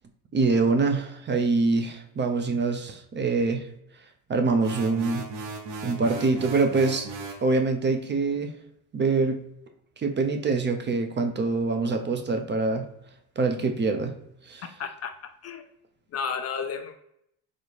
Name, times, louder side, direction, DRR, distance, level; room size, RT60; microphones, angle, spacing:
voice 1, 0.3-3.6 4.3-5.3 5.8-7.1 7.4-8.5 8.9-9.4 10.0-12.9 13.4-14.1 14.5-14.6, right 3 dB, 25° right, 5 dB, 0.5 m, -24 dB
sound 1, 4.6-7.5, right 3 dB, 65° right, 1.0 m, -37 dB
voice 2, 14.8-15.6 16.1-17.0, left 6 dB, 40° left, 7 dB, 0.4 m, -33 dB
4.0 x 2.3 x 3.2 m, 0.75 s
hypercardioid pair, 70°, 43 cm